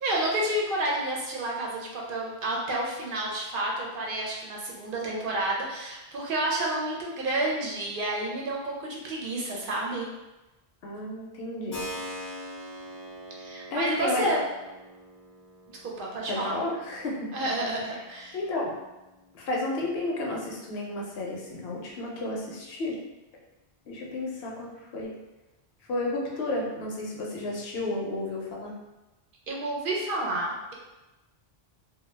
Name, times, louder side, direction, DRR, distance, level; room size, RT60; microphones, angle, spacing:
voice 1, 0.0-10.1 13.4-14.4 15.8-16.5 17.3-18.4 29.5-30.7, right 1 dB, 60° right, -3 dB, 0.7 m, -30 dB
voice 2, 10.8-11.8 13.7-14.3 16.3-17.3 18.3-18.7 19.3-23.0 23.9-25.2 25.9-28.7, left 2 dB, 75° left, -2 dB, 0.9 m, -32 dB
Keyboard (musical), 11.7-20.3, equal, 25° left, 0.4 m, -44 dB
2.2 x 2.1 x 3.2 m, 1.0 s
omnidirectional pair, 1.1 m